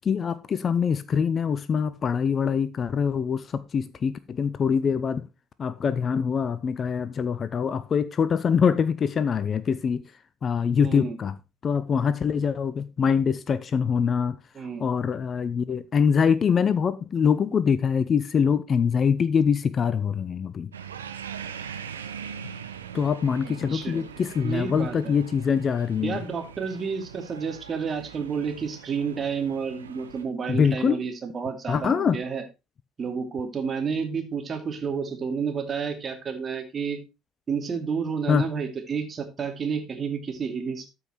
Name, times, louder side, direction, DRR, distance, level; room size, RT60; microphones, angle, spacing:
voice 1, 0.0-5.2 5.6-10.0 10.4-11.3 11.6-14.4 14.8-20.7 22.9-26.2 30.5-31.0 31.7-32.2 38.3-38.5, left 6 dB, 35° left, 0.7 m, -24 dB
voice 2, 10.8-11.2 14.5-14.8 23.4-24.1 24.4-25.1 26.0-32.4 33.0-37.0 37.5-40.9, right 6 dB, 35° right, 2.6 m, -30 dB
sound 1, 20.7-30.2, right 7 dB, 80° right, 0.9 m, -41 dB
13.5 x 5.7 x 4.4 m
figure-of-eight pair, 60°, 0 cm